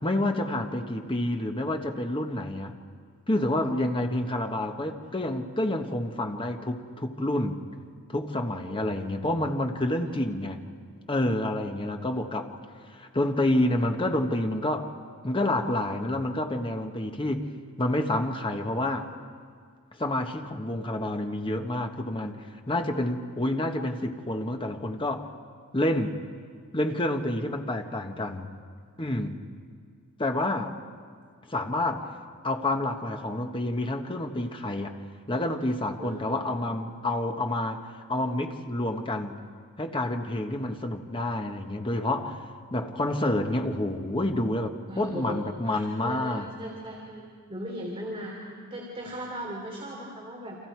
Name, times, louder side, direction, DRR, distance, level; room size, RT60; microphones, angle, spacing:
voice 1, 0.0-2.7 3.3-7.6 8.1-10.6 11.1-12.5 12.9-14.9 15.2-19.1 20.0-25.3 25.7-26.2 26.7-28.5 29.0-29.4 30.2-30.8 31.5-32.1 32.4-39.4 39.8-46.5, left 1 dB, 25° left, 5 dB, 1.4 m, -28 dB
voice 2, 8.6-9.1 36.0-36.6 44.9-47.2 47.5-50.6, equal, 25° right, -3 dB, 3.0 m, -38 dB
29.0 x 26.5 x 4.7 m, 2.1 s
head